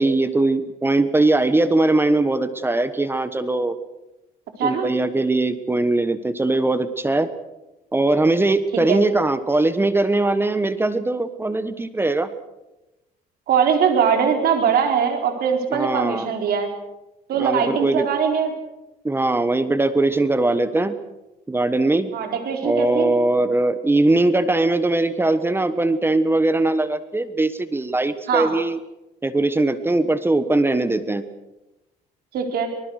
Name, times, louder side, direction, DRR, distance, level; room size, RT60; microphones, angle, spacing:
voice 1, 0.0-3.8 4.6-7.3 7.9-12.3 15.7-16.3 17.3-18.1 19.0-21.0 21.5-22.1 22.6-28.8 29.2-31.2, right 2 dB, 15° right, 13 dB, 1.2 m, -20 dB
voice 2, 13.5-16.7 17.3-18.5 22.1-23.1 28.3-28.5 32.3-32.7, right 7 dB, 65° right, 4 dB, 4.3 m, -21 dB
24.5 x 20.0 x 6.5 m, 0.99 s
cardioid pair, 110°, 17 cm